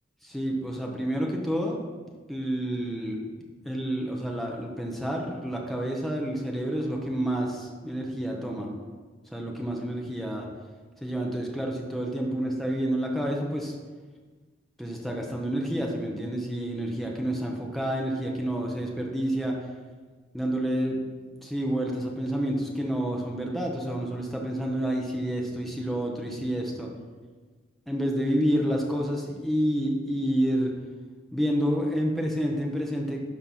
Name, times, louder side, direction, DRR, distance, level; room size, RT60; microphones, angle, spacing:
voice 1, 0.2-1.8 2.3-3.2 3.6-8.7 9.3-10.5 11.0-13.7 14.8-19.6 20.3-21.0 21.4-26.9 27.9-30.7 31.3-33.2, equal, ahead, -1 dB, 1.0 m, -29 dB
12.0 x 4.4 x 4.2 m, 1.4 s
head